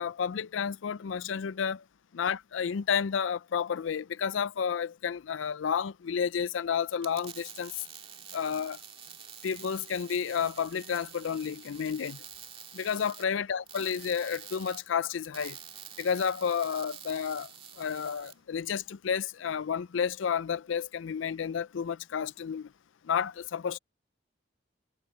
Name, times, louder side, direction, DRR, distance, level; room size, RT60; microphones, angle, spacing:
voice 1, 0.0-1.8 2.1-7.9 8.3-8.8 9.4-12.2 12.7-15.6 16.0-17.5 17.8-22.7 23.0-23.8, left 7 dB, 80° left, 0.4 m, -31 dB
sound 1, 6.9-18.3, right 8 dB, 30° right, 1.9 m, -47 dB
head